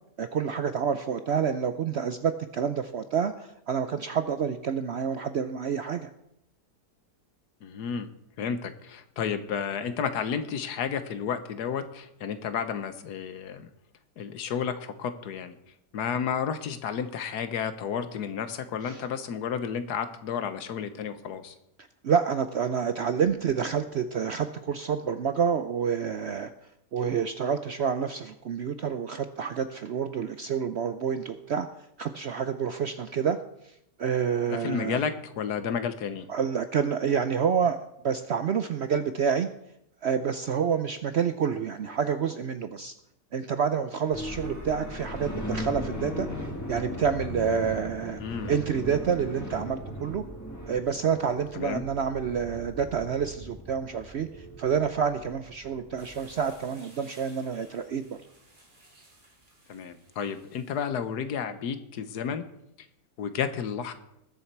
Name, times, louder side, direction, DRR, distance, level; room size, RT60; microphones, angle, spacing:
voice 1, 0.2-6.1 18.8-19.0 22.0-26.5 26.9-31.7 32.0-33.4 33.6-35.0 36.3-37.8 38.0-39.5 40.0-42.9 43.3-46.3 46.7-48.2 48.5-50.2 50.7-58.2, right 7 dB, 75° right, 10 dB, 0.6 m, -28 dB
voice 2, 7.6-8.1 8.4-13.7 14.2-15.6 15.9-21.5 34.5-36.3 48.2-48.6 51.5-51.8 59.7-62.4 62.8-62.9 63.2-63.9, left 7 dB, 70° left, 10 dB, 1.5 m, -32 dB
sound 1, 44.1-56.6, left 1 dB, 10° left, 1.6 m, -38 dB
sound 2, 47.9-52.9 54.2-54.7, right 8 dB, 55° right, 3.0 m, -51 dB
sound 3, 56.0-61.1, right 1 dB, 30° right, 2.4 m, -57 dB
20.0 x 7.2 x 4.6 m, 0.80 s
omnidirectional pair, 1.8 m